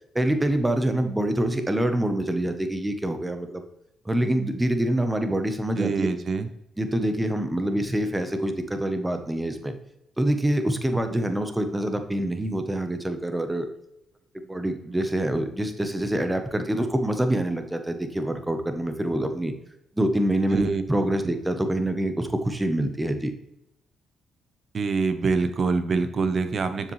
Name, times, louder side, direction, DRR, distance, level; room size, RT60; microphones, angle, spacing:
voice 1, 0.1-3.6 4.0-6.1 6.8-9.8 10.2-13.7 14.5-19.5 20.0-23.3, right 1 dB, 10° right, 7 dB, 1.0 m, -25 dB
voice 2, 5.7-6.5 20.5-20.8 24.7-26.9, right 4 dB, 45° right, 10 dB, 0.8 m, -25 dB
7.1 x 6.6 x 3.2 m, 0.82 s
cardioid pair, 90°, 0 cm